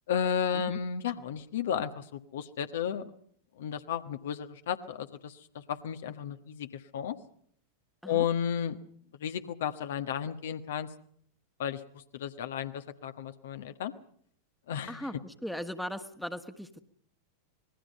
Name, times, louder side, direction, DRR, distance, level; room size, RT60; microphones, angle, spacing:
voice 1, 0.1-3.1 3.6-7.2 8.0-8.8 9.2-10.9 11.6-13.9 14.7-15.1, left 8 dB, 60° left, 9 dB, 1.5 m, -33 dB
voice 2, 14.9-16.8, equal, ahead, 10 dB, 1.6 m, -38 dB
26.5 x 21.0 x 5.5 m, 0.62 s
figure-of-eight pair, 90°, 0 cm